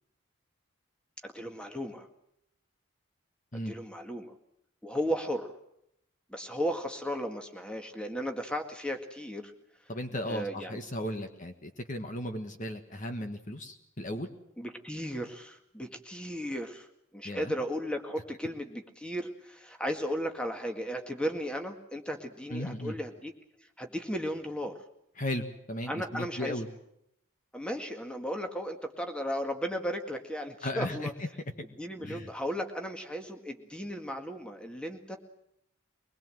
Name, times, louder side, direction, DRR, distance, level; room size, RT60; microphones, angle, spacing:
voice 1, 1.2-2.1 3.7-4.3 4.8-5.6 6.3-9.5 10.2-10.8 11.2-11.3 14.6-16.9 17.1-23.3 23.8-24.7 25.9-26.6 27.5-31.1 31.8-35.2, equal, 5° left, 5 dB, 2.0 m, -35 dB
voice 2, 9.9-14.3 17.2-17.5 22.5-23.0 25.2-26.7 30.6-31.3 32.0-32.3, left 1 dB, 40° left, 6 dB, 1.6 m, -36 dB
23.0 x 21.0 x 7.8 m, 0.76 s
head